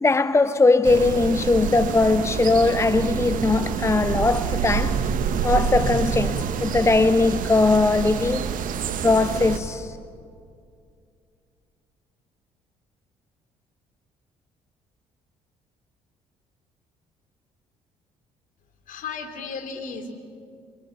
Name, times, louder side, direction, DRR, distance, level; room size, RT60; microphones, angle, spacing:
voice 1, 0.0-5.0 5.4-6.3 6.6-8.5 9.0-9.9, left 3 dB, 15° left, 0.8 m, -20 dB
sound 1, 0.8-9.6, right 7 dB, 60° right, 1.6 m, -27 dB
voice 2, 18.9-20.1, left 5 dB, 60° left, 3.0 m, -34 dB
27.5 x 24.5 x 5.9 m
hypercardioid pair, 50°, 16 cm